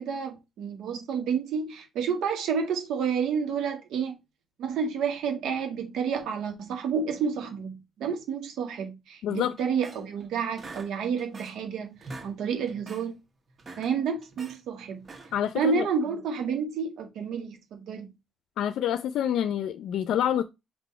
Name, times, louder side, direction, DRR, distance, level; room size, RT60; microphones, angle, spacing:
voice 1, 0.0-4.2 4.6-13.2 13.8-15.0 15.5-18.1, right 6 dB, 75° right, 1.9 m, -30 dB
voice 2, 9.2-9.5 15.3-15.9 18.6-20.4, left 10 dB, 75° left, 0.5 m, -27 dB
sound 1, 9.6-10.3 10.6-11.7 11.9-12.3 12.7-13.1 13.5-14.6 15.0-15.5, right 3 dB, 40° right, 1.6 m, -44 dB
5.3 x 4.1 x 4.3 m
cardioid pair, 80°, 0 cm